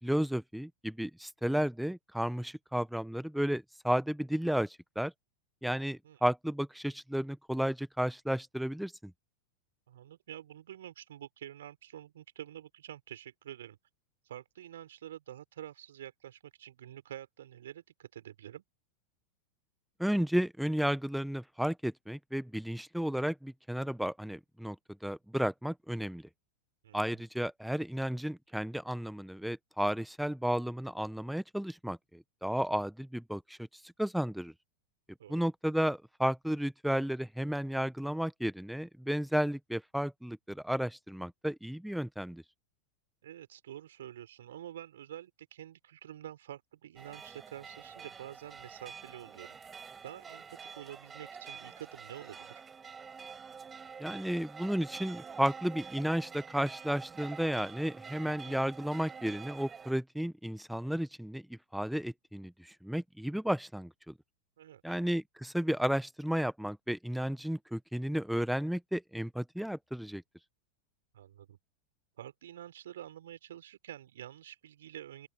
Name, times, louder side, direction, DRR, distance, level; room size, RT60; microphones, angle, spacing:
voice 1, 0.0-5.1 5.6-9.1 20.0-24.7 25.0-26.2 26.9-33.6 34.0-34.5 35.3-42.4 54.0-64.1 64.8-70.2, equal, ahead, 1.5 m, -33 dB
voice 2, 9.9-13.8 14.2-18.6 26.8-27.0 35.2-35.5 43.2-52.6 58.2-58.6 64.6-65.0 71.1-71.6 72.2-75.3, right 11 dB, 60° right, 4.1 m, -48 dB
sound 1, 47.0-59.9, right 6 dB, 20° right, 5.0 m, -47 dB
open air
figure-of-eight pair, 90°, 0 cm